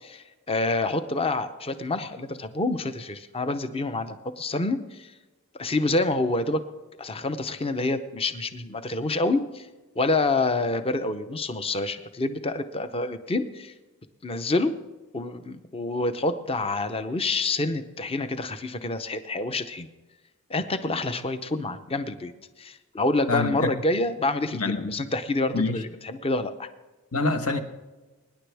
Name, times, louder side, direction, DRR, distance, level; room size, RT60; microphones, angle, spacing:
voice 1, 0.0-5.1 5.6-6.6 7.0-9.7 10.0-13.7 14.2-14.7 15.1-19.9 20.5-22.3 22.6-26.7, left 2 dB, 25° left, 0.7 m, -27 dB
voice 2, 23.3-23.7 24.5-24.9 25.5-25.8 27.1-27.6, left 3 dB, 70° left, 1.2 m, -26 dB
23.5 x 10.0 x 3.4 m
head